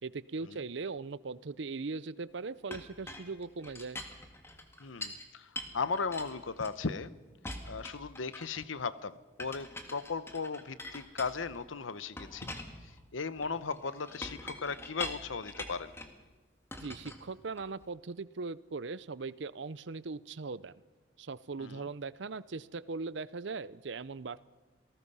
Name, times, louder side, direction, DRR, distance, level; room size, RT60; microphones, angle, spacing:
voice 1, 0.0-4.0 16.8-20.7 21.2-24.5, right 4 dB, 65° right, 18 dB, 0.6 m, -39 dB
Chink clink, 2.7-5.2 5.6-7.0 7.4-8.7 9.4-11.7 12.2-16.2 16.7-17.9, left 1 dB, 15° left, 1.8 m, -44 dB
voice 2, 4.8-7.1 7.6-12.5 13.1-15.9 21.6-21.9, left 4 dB, 90° left, 15 dB, 0.9 m, -37 dB
27.5 x 18.5 x 5.6 m, 1.2 s
head